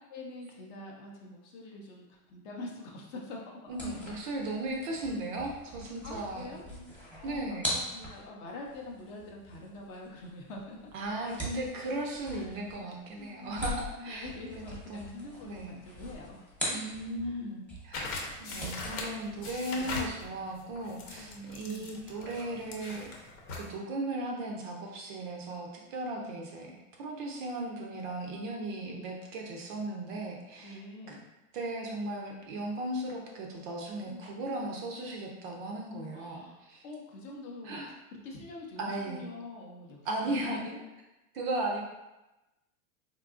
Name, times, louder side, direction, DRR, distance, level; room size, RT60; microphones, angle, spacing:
voice 1, 0.1-3.9 6.0-10.8 12.3-12.5 13.2-16.5 17.2-17.5 19.7-19.9 21.2-22.0 26.2-26.4 28.9-29.2 30.1-30.3 30.6-31.2 34.1-34.3 36.1-37.8 38.2-40.7, left 2 dB, 35° left, -1 dB, 0.5 m, -45 dB
sound 1, 3.7-17.4 17.7-20.2, equal, 5° left, 0.8 m, -42 dB
voice 2, 3.7-6.8 7.2-7.8 10.9-14.3 14.5-14.6 14.9-15.7 16.7-18.1 18.4-23.1 23.6-30.8 31.1-31.2 31.5-36.8 37.6-37.9 38.8-39.3 40.0-40.7 41.3-41.8, right 2 dB, 35° right, 0 dB, 0.4 m, -36 dB
sound 2, 17.9-23.7, left 3 dB, 60° left, 0.9 m, -41 dB
3.6 x 2.7 x 2.4 m, 1.0 s
hypercardioid pair, 130°, 44 cm